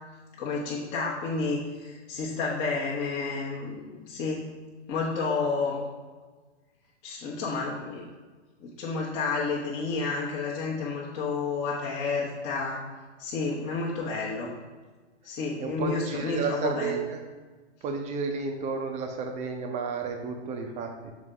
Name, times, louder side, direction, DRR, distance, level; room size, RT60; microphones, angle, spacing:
voice 1, 0.4-4.5 4.9-5.8 7.0-8.1 8.6-12.8 13.2-14.5 15.2-17.0, left 4 dB, 30° left, -5 dB, 1.1 m, -30 dB
voice 2, 15.6-17.2 17.8-21.1, right 5 dB, 20° right, 4 dB, 0.7 m, -32 dB
6.2 x 4.3 x 3.8 m, 1.3 s
hypercardioid pair, 120°, 35 cm